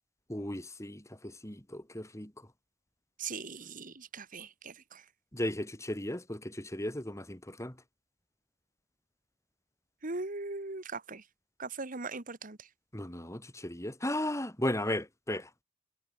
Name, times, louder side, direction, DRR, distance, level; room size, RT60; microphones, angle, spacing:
voice 1, 0.3-2.3 5.3-7.7 12.9-15.5, left 1 dB, 15° left, 3.4 m, -35 dB
voice 2, 3.2-5.0 10.0-11.2 11.6-12.7, right 3 dB, 40° right, 1.7 m, -40 dB
head